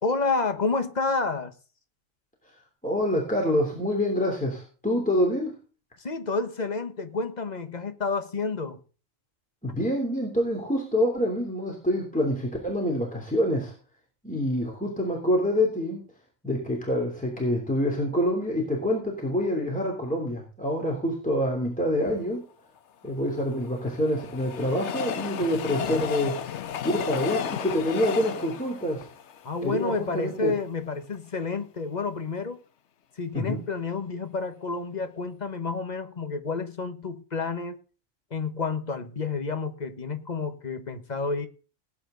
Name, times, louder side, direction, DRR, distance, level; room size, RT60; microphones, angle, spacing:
voice 1, 0.0-1.5 6.0-8.8 29.4-32.6 33.2-37.8 38.3-41.5, left 4 dB, 35° left, 8 dB, 1.3 m, -30 dB
voice 2, 2.8-5.5 9.6-13.7 14.2-16.0 16.4-22.4 23.0-26.4 26.8-29.1 29.6-30.5 33.3-33.6, equal, 5° left, -1 dB, 3.1 m, -26 dB
Train, 23.1-30.3 30.9-31.0 31.2-31.3, left 8 dB, 65° left, 1.0 m, -33 dB
18.5 x 8.7 x 3.9 m, 0.37 s
omnidirectional pair, 1.4 m